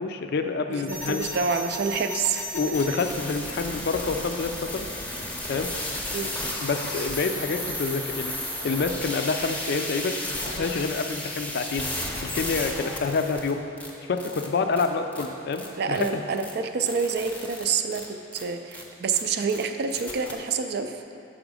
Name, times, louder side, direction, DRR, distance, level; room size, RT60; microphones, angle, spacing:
voice 1, 0.0-1.3 2.5-4.9 5.5-5.7 6.6-8.3 8.6-10.2 10.4-13.6 14.1-16.2, left 4 dB, 60° left, 7 dB, 0.4 m, -27 dB
voice 2, 0.7-2.5 6.1-6.4 15.8-21.0, right 5 dB, 60° right, 7 dB, 0.4 m, -27 dB
sound 1, 0.9-13.5 13.8-13.9 14.2-14.5 14.7-14.9 15.1-15.3 15.5-15.7 15.9-16.1 16.4-16.5 16.8-17.6 17.9-18.0 18.3-18.4 18.7-18.8 19.1-19.2 19.5-19.6 19.9-20.3, left 1 dB, 10° left, 0.6 m, -34 dB
6.2 x 5.0 x 4.8 m, 2.6 s
head